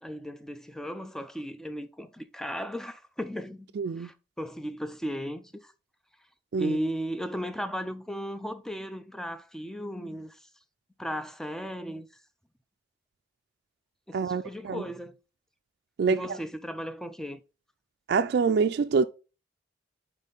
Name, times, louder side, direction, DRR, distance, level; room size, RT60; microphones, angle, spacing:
voice 1, 0.0-3.7 4.0-5.7 6.6-10.5 11.0-12.1 14.1-15.2 16.1-17.4, equal, 5° left, 0.4 m, -36 dB
voice 2, 3.8-4.1 6.5-6.8 14.1-14.8 16.0-16.4 18.1-19.0, right 5 dB, 60° right, 0.3 m, -26 dB
5.4 x 4.5 x 3.9 m
head